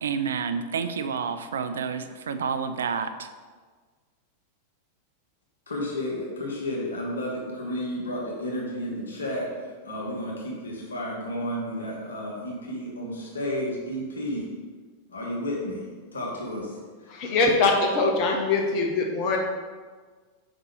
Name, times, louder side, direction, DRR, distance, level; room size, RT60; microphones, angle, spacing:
voice 1, 0.0-3.3, right 6 dB, 65° right, 10 dB, 0.4 m, -29 dB
voice 2, 5.7-14.5 15.1-17.4, left 1 dB, 70° left, -3 dB, 1.3 m, -32 dB
voice 3, 17.1-19.4, left 3 dB, 40° left, 1 dB, 1.1 m, -23 dB
5.1 x 4.1 x 4.6 m, 1.5 s
figure-of-eight pair, 90°, 0 cm